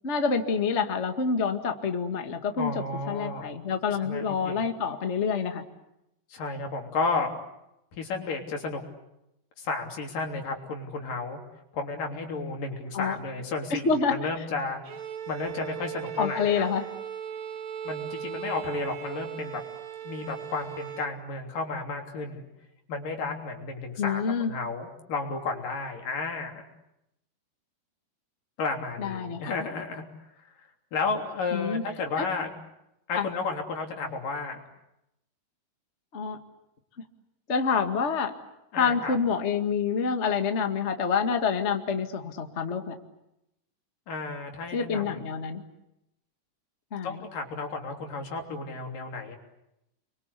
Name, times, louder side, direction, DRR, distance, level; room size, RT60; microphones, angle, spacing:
voice 1, 0.0-2.7 3.1-5.6 12.9-13.1 13.7-14.1 16.2-16.8 24.0-24.5 29.0-29.5 31.5-31.8 32.2-32.3 33.1-33.2 36.1-36.4 37.5-38.3 38.7-42.9 44.7-45.6 46.9-47.2, left 5 dB, 25° left, 6 dB, 1.6 m, -27 dB
voice 2, 2.6-3.5 4.0-4.7 6.3-7.4 7.9-8.8 9.6-11.4 11.7-14.8 15.3-16.7 17.8-19.6 20.0-22.5 22.9-26.6 28.6-30.0 30.9-32.5 33.1-34.6 38.7-39.2 44.1-45.2 47.0-49.4, left 3 dB, 80° left, 3 dB, 5.0 m, -32 dB
Bowed string instrument, 14.8-21.2, right 9 dB, 60° right, 2.6 m, -38 dB
30.0 x 23.5 x 8.3 m, 0.87 s
omnidirectional pair, 3.8 m